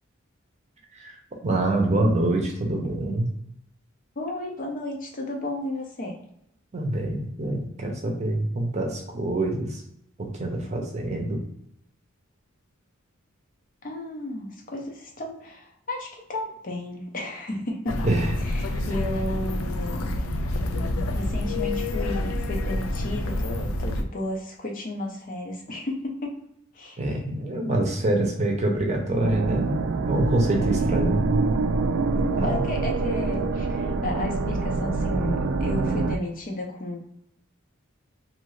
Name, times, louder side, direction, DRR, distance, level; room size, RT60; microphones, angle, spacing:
voice 1, 1.4-3.3 6.7-9.8 10.2-11.4 18.0-18.3 18.7-18.9 27.0-29.7 30.0-31.2 32.3-32.6, right 1 dB, 35° right, 1 dB, 0.7 m, -25 dB
voice 2, 4.2-6.1 13.8-18.0 18.4-20.1 21.1-26.4 26.7-27.0 30.6-31.0 32.2-37.1, left 1 dB, 40° left, 1 dB, 0.6 m, -33 dB
sound 1, 17.9-24.0, left 1 dB, 85° left, 0.4 m, -28 dB
sound 2, 29.2-36.2, right 3 dB, 60° right, 0.3 m, -25 dB
2.7 x 2.5 x 3.1 m, 0.75 s
head